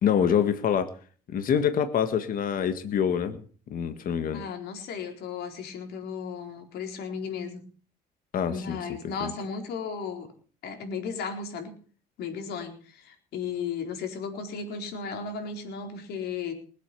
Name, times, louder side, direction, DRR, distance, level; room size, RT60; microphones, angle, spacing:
voice 1, 0.0-0.9 1.3-3.4 3.7-4.4 8.3-8.8 9.2-9.3, left 8 dB, 55° left, 9 dB, 1.7 m, -25 dB
voice 2, 4.3-7.6 8.5-10.3 10.6-11.7 12.2-16.5, left 5 dB, 75° left, 4 dB, 4.3 m, -35 dB
20.5 x 8.4 x 7.0 m, 0.41 s
cardioid pair, 110°, 17 cm